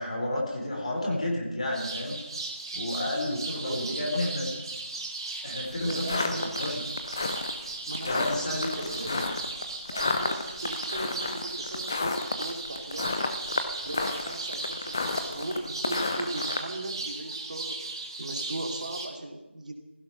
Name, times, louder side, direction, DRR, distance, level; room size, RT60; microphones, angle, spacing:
voice 1, 0.0-2.2 2.7-4.5 5.4-6.8 8.0-9.3, left 1 dB, 35° left, -1 dB, 4.0 m, -31 dB
sound 1, 1.7-19.1, right 3 dB, 20° right, 1.7 m, -37 dB
voice 2, 3.5-4.3 5.8-6.6 7.9-9.3 9.9-13.4 13.8-17.9 18.2-19.7, right 2 dB, 40° right, 3 dB, 2.6 m, -38 dB
sound 2, 5.6-16.6, left 3 dB, 15° left, 0.6 m, -31 dB
16.0 x 15.5 x 5.8 m, 1.1 s
figure-of-eight pair, 170°, 7 cm